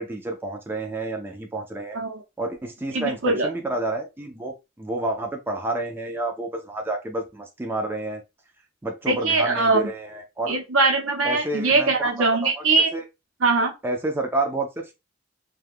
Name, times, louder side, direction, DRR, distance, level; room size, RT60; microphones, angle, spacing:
voice 1, 0.0-2.0 2.4-8.2 8.8-10.6 11.2-12.6 12.9-13.1 13.8-14.9, right 2 dB, 10° right, 0.4 m, -29 dB
voice 2, 2.9-3.5 9.1-9.8 10.5-12.9 13.4-13.7, right 3 dB, 75° right, 0.8 m, -21 dB
2.4 x 2.3 x 3.4 m
head